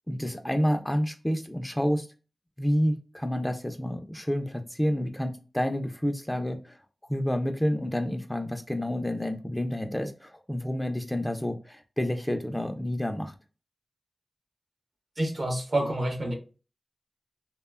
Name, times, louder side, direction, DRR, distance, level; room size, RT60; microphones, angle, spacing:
voice 1, 0.1-2.1 2.6-6.8 7.1-13.3, equal, 10° left, 0.4 m, -29 dB
voice 2, 15.2-16.3, right 1 dB, 55° right, 0.8 m, -28 dB
3.0 x 2.1 x 2.2 m
cardioid pair, 50°, 0 cm